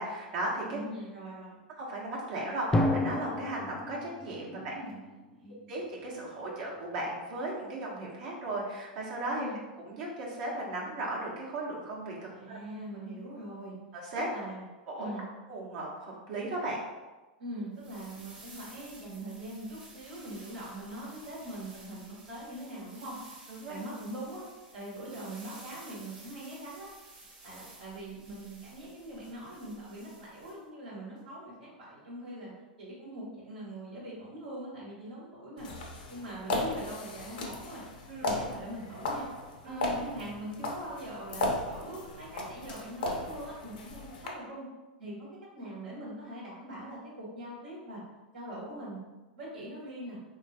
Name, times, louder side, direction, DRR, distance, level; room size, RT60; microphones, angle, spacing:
voice 1, 0.0-0.8 1.8-4.7 5.7-9.5 9.9-12.6 13.9-14.3 14.9-15.1 15.5-16.8 23.5-23.8 38.1-38.3 39.6-39.8, right 2 dB, 60° right, -4 dB, 1.1 m, -36 dB
voice 2, 0.7-1.6 4.5-5.5 9.3-9.6 12.3-13.8 14.3-14.7 15.0-15.2 17.4-23.2 23.7-24.4 24.7-26.9 27.4-32.5 32.8-35.7 36.1-37.8 38.2-39.2 39.6-44.7 45.0-45.2 45.5-48.0 48.3-49.0 49.4-50.2, right 1 dB, 75° right, -6 dB, 1.3 m, -42 dB
Drum, 2.7-5.4, left 1 dB, 10° left, 0.4 m, -31 dB
sound 1, 17.7-30.6, right 2 dB, 25° right, 0.9 m, -53 dB
sound 2, 35.6-44.3, left 2 dB, 70° left, 0.7 m, -36 dB
3.4 x 2.9 x 2.7 m, 1.1 s
hypercardioid pair, 105°, 5 cm